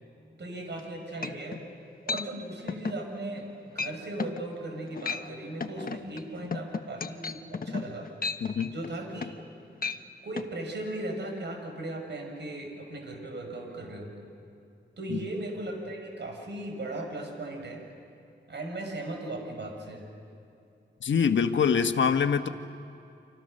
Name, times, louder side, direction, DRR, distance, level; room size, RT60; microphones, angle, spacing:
voice 1, 0.4-1.6 2.1-8.1 8.7-9.4 10.2-14.1 15.0-17.8 18.5-20.0, right 1 dB, 65° right, 3 dB, 6.2 m, -37 dB
sound 1, 0.8-0.9 1.2-1.6 2.1-2.3 2.7-3.0 3.4-3.5 3.8-4.4 4.9-5.3 5.6-9.5 9.8-10.0 10.4-10.5, left 4 dB, 45° left, 1.2 m, -34 dB
voice 2, 8.4-8.7 15.1-15.3 21.0-22.5, left 6 dB, 75° left, 8 dB, 1.3 m, -24 dB
29.5 x 26.5 x 6.6 m, 2.6 s
cardioid pair, 75°, 20 cm